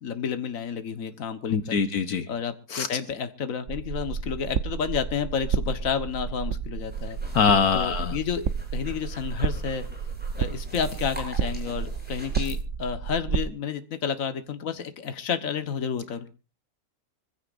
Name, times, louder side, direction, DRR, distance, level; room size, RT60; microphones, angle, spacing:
voice 1, 0.0-1.8 2.3-7.2 7.7-8.4 8.7-9.8 10.4-16.3, left 7 dB, 60° left, 10 dB, 1.7 m, -30 dB
voice 2, 1.5-2.3 2.7-2.9 7.3-8.2, left 6 dB, 75° left, 10 dB, 1.6 m, -23 dB
sound 1, 3.7-13.4, right 6 dB, 55° right, 1.1 m, -31 dB
sound 2, 6.8-12.6, equal, 5° right, 7.0 m, -45 dB
25.0 x 15.5 x 2.5 m, 0.32 s
omnidirectional pair, 1.6 m